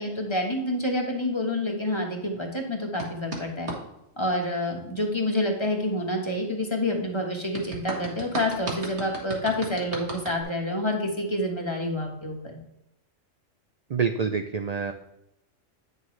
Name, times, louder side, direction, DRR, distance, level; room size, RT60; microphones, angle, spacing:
voice 1, 0.0-3.7 4.2-12.6, left 1 dB, 20° left, 1 dB, 1.2 m, -28 dB
sound 1, 3.0-3.8 7.5-10.4, right 3 dB, 55° right, 1.8 m, -35 dB
voice 2, 13.9-14.9, right 6 dB, 80° right, 7 dB, 0.3 m, -26 dB
8.9 x 6.7 x 3.2 m, 0.86 s
omnidirectional pair, 1.3 m